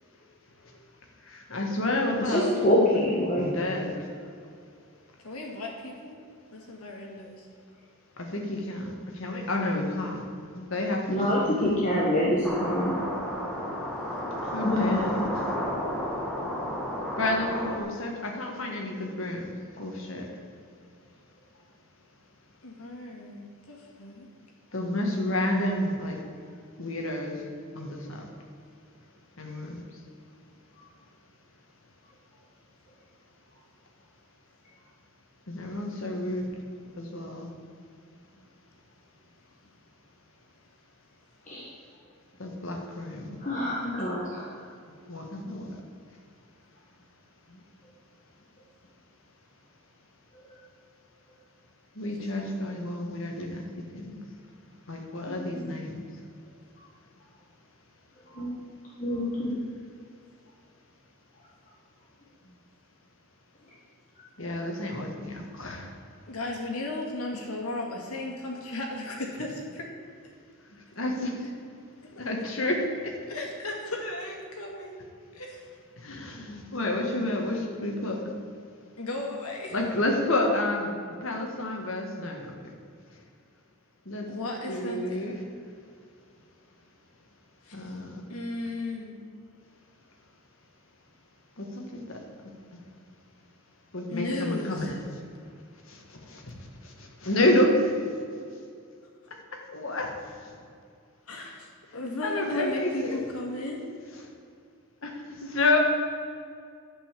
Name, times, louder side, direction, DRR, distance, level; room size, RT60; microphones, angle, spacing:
voice 1, 1.3-2.6 2.9-3.0 3.4-3.9 8.2-10.2 10.5-11.8 14.5-15.5 17.2-19.5 19.8-20.3 24.7-26.2 26.8-27.4 27.7-28.3 29.4-29.8 35.5-36.5 37.0-37.5 42.4-43.4 45.1-45.7 51.9-54.2 54.9-56.0 64.4-65.9 71.0-71.5 72.2-73.2 76.0-78.2 79.7-80.9 81.2-82.7 84.0-84.3 84.7-85.4 87.7-88.2 91.6-92.5 93.9-95.0 95.9-96.5 96.8-97.9 99.5-100.2 100.4-100.5 102.2-103.2 105.0-105.1 105.4-105.8, left 1 dB, 60° left, 1 dB, 1.6 m, -30 dB
voice 2, 2.2-3.5 11.1-12.9 14.6-15.3 41.5-41.6 43.4-44.5 55.3-55.6 58.3-58.5 59.0-59.5, left 1 dB, 35° left, -5 dB, 1.5 m, -26 dB
voice 3, 5.2-6.2 6.5-7.5 22.6-24.3 66.3-69.9 73.3-75.0 75.3-75.6 79.0-79.8 84.3-85.2 87.6-87.9 88.3-89.1 94.1-94.9 101.3-103.8, left 2 dB, 80° left, -1 dB, 2.1 m, -35 dB
sound 1, 12.4-17.8, equal, ahead, 1.4 m, -32 dB
11.0 x 5.5 x 7.4 m, 2.4 s
head